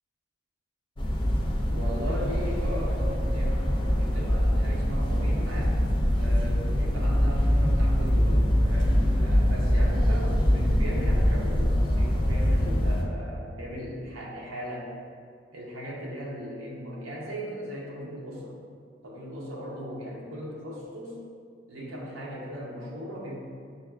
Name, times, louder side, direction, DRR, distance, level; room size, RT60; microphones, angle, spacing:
sound 1, 1.0-13.0, equal, 25° left, 0.3 m, -24 dB
voice 1, 1.7-5.8 6.1-14.9 15.5-18.6 19.0-21.2 21.7-23.4, equal, 85° right, -4 dB, 0.7 m, -38 dB
6.5 x 2.3 x 2.3 m, 2.2 s
head